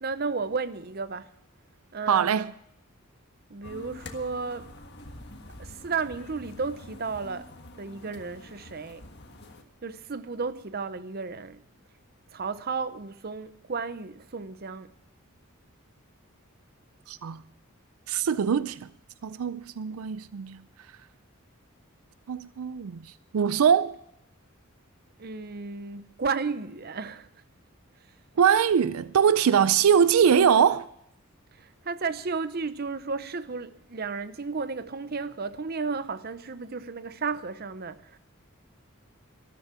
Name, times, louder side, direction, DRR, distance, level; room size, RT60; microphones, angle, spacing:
voice 1, 0.0-1.3 1.9-2.5 3.5-4.7 5.6-7.5 7.8-9.0 9.8-11.6 12.3-14.9 25.2-27.3 31.6-38.2, right 4 dB, 45° right, 0.7 m, -33 dB
voice 2, 2.1-2.5 17.1-17.4 18.1-18.8 19.2-20.6 22.3-23.0 23.3-23.9 28.4-30.9, right 7 dB, 85° right, 0.4 m, -22 dB
sound 1, 3.6-9.6, left 2 dB, 50° left, 1.6 m, -46 dB
13.5 x 13.0 x 6.0 m
head